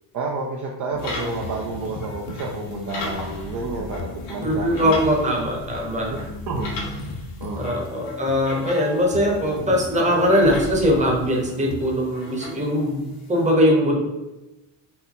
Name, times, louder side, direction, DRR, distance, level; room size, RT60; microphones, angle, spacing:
voice 1, 0.1-5.0 6.5-6.7 7.4-7.8, right 3 dB, 45° right, -1 dB, 0.6 m, -30 dB
sound 1, 0.9-11.8, left 3 dB, 45° left, 0.6 m, -36 dB
sound 2, 1.0-13.5, left 2 dB, 90° left, 1.3 m, -39 dB
voice 2, 4.4-6.1 7.5-14.1, equal, 15° right, -1 dB, 1.0 m, -21 dB
4.3 x 2.6 x 3.7 m, 1.0 s
cardioid pair, 125°, 43 cm